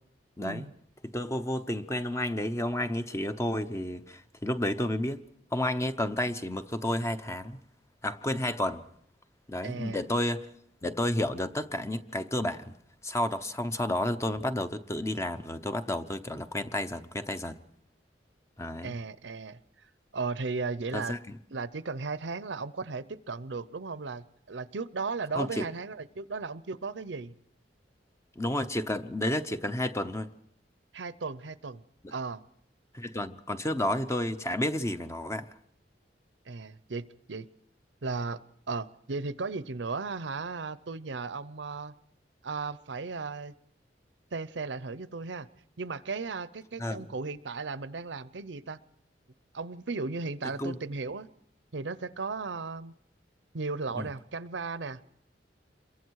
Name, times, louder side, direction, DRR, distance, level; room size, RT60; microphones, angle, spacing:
voice 1, 0.4-0.7 9.6-10.0 18.8-19.6 20.1-21.2 21.5-27.3 30.9-31.8 32.1-32.4 36.5-37.5 38.0-38.4 38.7-41.9 42.4-43.5 44.3-45.5 45.8-48.8 49.5-51.3 51.7-52.9 53.5-55.0, right 4 dB, 80° right, 0.7 m, -36 dB
voice 2, 1.0-5.2 5.5-7.6 8.0-8.8 9.5-10.5 10.8-12.7 13.0-17.6 18.6-18.9 20.9-21.4 25.4-25.7 28.4-30.3 32.0-32.1 32.9-35.5 46.8-47.0 50.6-50.8 53.9-54.1, left 1 dB, 15° left, 0.8 m, -31 dB
27.5 x 22.5 x 4.7 m
head